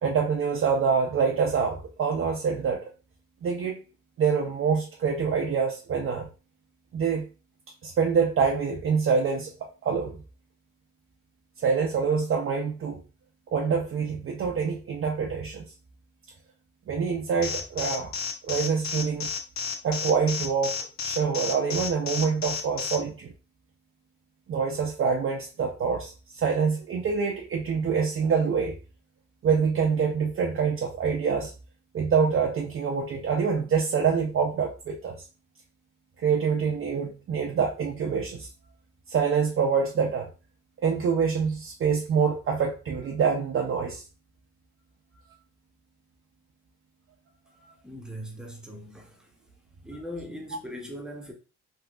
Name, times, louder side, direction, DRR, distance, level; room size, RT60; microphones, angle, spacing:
voice 1, 0.0-2.9 3.4-3.8 4.2-6.3 6.9-7.2 7.8-10.2 11.6-13.0 13.5-15.7 16.9-18.1 18.4-19.3 19.8-20.8 21.0-23.3 24.5-28.8 29.4-31.5 31.9-35.2 36.2-38.5 39.1-40.3 40.8-44.0, right 6 dB, 45° right, 0.6 m, -26 dB
Alarm, 17.4-23.0, left 6 dB, 65° left, 0.6 m, -31 dB
voice 2, 47.8-49.3 49.8-51.3, equal, 5° right, 0.9 m, -40 dB
3.5 x 2.7 x 2.4 m
cardioid pair, 90°, 30 cm